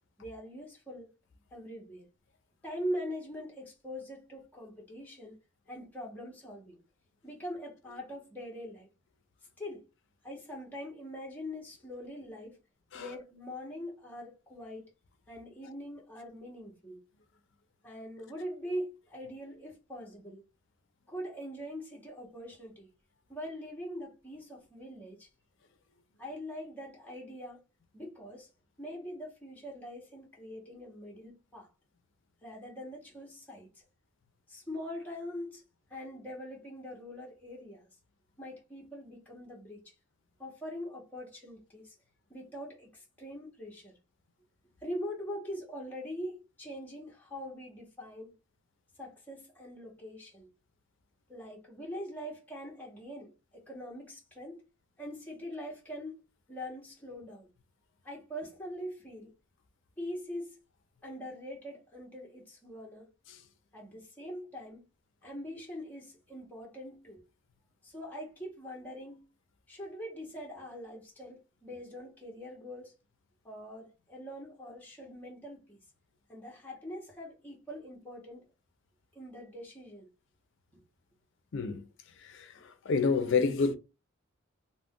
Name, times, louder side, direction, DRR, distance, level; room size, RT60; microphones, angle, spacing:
voice 1, 0.2-1.1 1.5-2.1 2.6-5.4 5.7-6.8 7.2-8.9 9.6-9.8 10.2-12.6 12.9-14.9 15.3-17.0 17.8-20.5 21.1-22.9 23.3-25.3 26.2-27.6 27.9-28.5 28.8-31.7 32.4-33.8 34.5-35.6 35.9-37.9 38.4-39.9 40.4-41.9 42.3-44.0 44.8-48.3 49.0-50.5 51.3-54.6 55.0-56.2 56.5-57.5 58.0-59.3 60.0-60.6 61.0-63.1 63.7-64.9 65.2-67.2 67.8-69.3 69.7-72.9 73.4-75.8 76.3-78.5 79.1-80.1 80.7-80.8, equal, 10° left, 0.8 m, -43 dB
voice 2, 81.5-81.8 82.2-82.5 82.9-83.7, left 4 dB, 60° left, 0.5 m, -28 dB
2.4 x 2.1 x 3.6 m
head